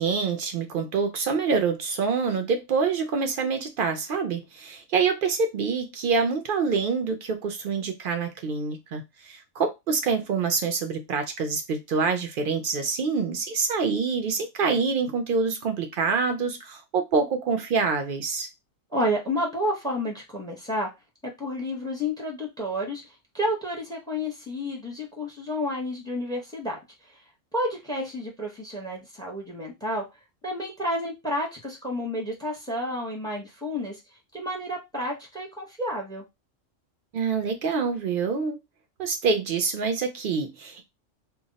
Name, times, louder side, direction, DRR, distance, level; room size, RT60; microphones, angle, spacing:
voice 1, 0.0-18.5 37.1-38.6 39.0-40.8, right 5 dB, 65° right, 0.5 m, -26 dB
voice 2, 18.9-20.9 21.2-23.0 23.3-26.8 27.5-30.0 30.4-34.0 34.3-36.2, equal, 5° left, 0.6 m, -30 dB
2.2 x 2.0 x 3.8 m
omnidirectional pair, 1.3 m